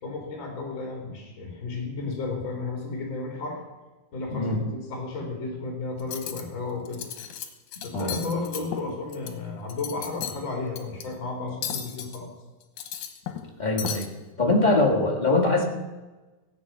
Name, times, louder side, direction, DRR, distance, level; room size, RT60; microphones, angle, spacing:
voice 1, 0.0-3.6 4.1-7.0 7.8-12.3, left 3 dB, 40° left, 2 dB, 3.7 m, -33 dB
Cutlery silverware, 6.0-6.4 6.9-7.5 7.7-9.3 9.7-10.4 10.8-11.0 11.6-12.2 12.6-13.5 13.8-14.1, left 9 dB, 75° left, 2.7 m, -34 dB
voice 2, 13.6-14.1 14.4-15.6, left 2 dB, 15° left, 0 dB, 1.6 m, -22 dB
15.5 x 8.4 x 7.2 m, 1.2 s
omnidirectional pair, 3.6 m